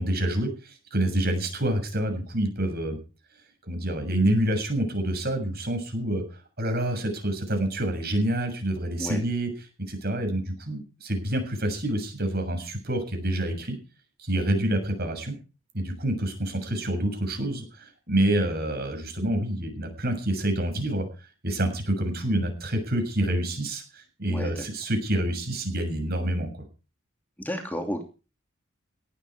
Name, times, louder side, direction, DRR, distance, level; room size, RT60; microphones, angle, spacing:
voice 1, 0.0-3.0 3.7-9.5 9.9-13.8 14.2-15.3 15.7-21.1 21.4-26.5, right 1 dB, 50° right, 6 dB, 6.9 m, -27 dB
voice 2, 24.3-24.7 27.4-28.0, equal, 10° left, 3 dB, 2.9 m, -32 dB
17.5 x 13.0 x 4.9 m, 0.35 s
head